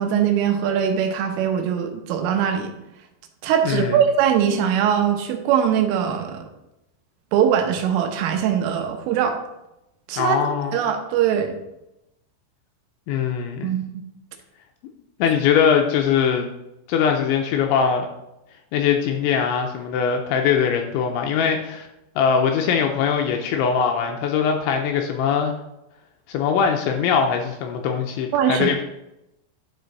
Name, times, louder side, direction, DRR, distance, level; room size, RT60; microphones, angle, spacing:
voice 1, 0.0-2.7 3.4-6.5 7.3-9.4 10.1-10.4 10.7-11.6 13.6-14.0 28.3-28.8, right 8 dB, 80° right, 5 dB, 3.4 m, -21 dB
voice 2, 3.6-4.0 10.2-10.8 13.1-13.7 15.2-16.5 16.9-18.1 18.7-21.9 22.2-25.5 26.3-28.8, left 7 dB, 85° left, 3 dB, 2.8 m, -21 dB
11.0 x 5.1 x 4.0 m, 0.89 s
omnidirectional pair, 5.8 m